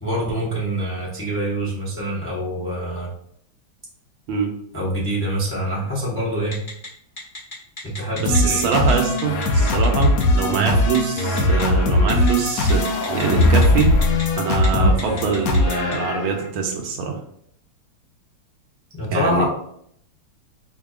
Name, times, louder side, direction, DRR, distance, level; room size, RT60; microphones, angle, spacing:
voice 1, 0.0-3.1 4.7-6.6 7.8-8.7 10.5-10.8 14.7-15.0 19.0-19.4, right 1 dB, 10° left, -6 dB, 0.6 m, -25 dB
Telephone, 6.5-6.9 7.2-8.4 8.7-8.9 9.2-10.2 10.9-11.6 12.1-12.3 12.7-14.2 14.5-14.7 15.0-15.9, left 2 dB, 30° left, 1.2 m, -33 dB
voice 2, 8.2-12.8 13.1-13.9 14.4-17.2 19.1-19.4, right 5 dB, 85° right, 2 dB, 1.5 m, -23 dB
sound 1, 8.3-16.5, left 1 dB, 90° left, 0.7 m, -20 dB
sound 2, 12.4-14.3, left 2 dB, 70° left, 1.4 m, -22 dB
4.9 x 2.8 x 2.3 m, 0.68 s
omnidirectional pair, 2.2 m